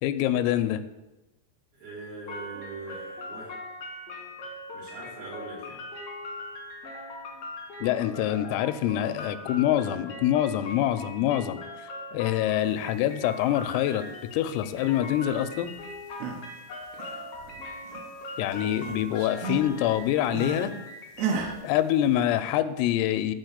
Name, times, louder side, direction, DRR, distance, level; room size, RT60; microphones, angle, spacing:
voice 1, 0.0-0.8 7.8-11.6 12.1-14.0 14.3-15.7 18.4-20.7 21.6-23.4, left 12 dB, 85° left, 11 dB, 3.3 m, -25 dB
voice 2, 1.7-3.5 4.7-5.8, right 3 dB, 90° right, -6 dB, 7.1 m, -41 dB
sound 1, 2.3-21.5, left 2 dB, 70° left, 1.4 m, -40 dB
sound 2, 15.9-16.5 16.8-18.2 18.5-20.7 21.2-21.6, right 6 dB, 70° right, 2.7 m, -34 dB
12.0 x 4.5 x 8.1 m, 1.0 s
omnidirectional pair, 5.9 m